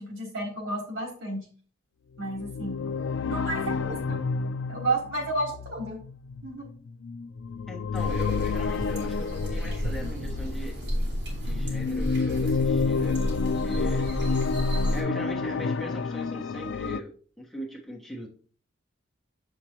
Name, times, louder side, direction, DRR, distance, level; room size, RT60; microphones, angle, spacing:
voice 1, 0.0-1.5 2.2-2.8 3.2-4.2 4.7-6.0 6.4-6.7, right 2 dB, 75° right, 0 dB, 3.2 m, -31 dB
sound 1, 2.2-10.7 11.3-17.0, left 5 dB, 60° left, 0.3 m, -30 dB
voice 2, 7.7-10.8 11.4-13.2 13.6-14.1 14.9-18.3, equal, ahead, -3 dB, 1.1 m, -39 dB
sound 2, 7.9-15.0, equal, 55° right, 3.8 m, -31 dB
7.6 x 6.3 x 2.9 m, 0.43 s
head